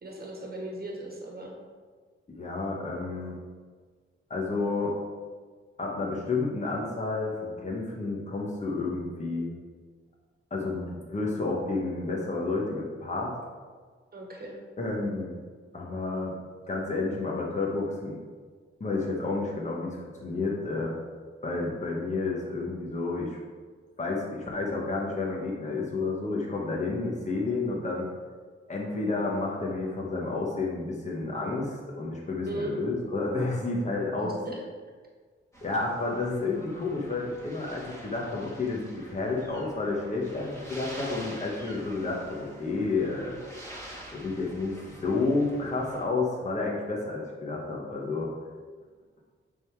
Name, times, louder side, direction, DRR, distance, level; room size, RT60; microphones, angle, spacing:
voice 1, 0.0-1.5 14.1-14.6 32.5-32.7 34.2-34.6, right 2 dB, 45° right, -1 dB, 1.4 m, -38 dB
voice 2, 2.3-3.3 4.3-5.0 5.8-9.5 10.5-13.3 14.8-15.4 15.7-16.3 16.7-18.2 18.8-21.0 21.4-23.4 24.0-28.1 28.7-34.4 35.6-43.4 44.1-48.3, left 3 dB, 35° left, -2 dB, 1.4 m, -30 dB
sound 1, 35.5-46.0, equal, 15° left, 1.8 m, -47 dB
9.3 x 3.8 x 4.7 m, 1.5 s
cardioid pair, 85°, 21 cm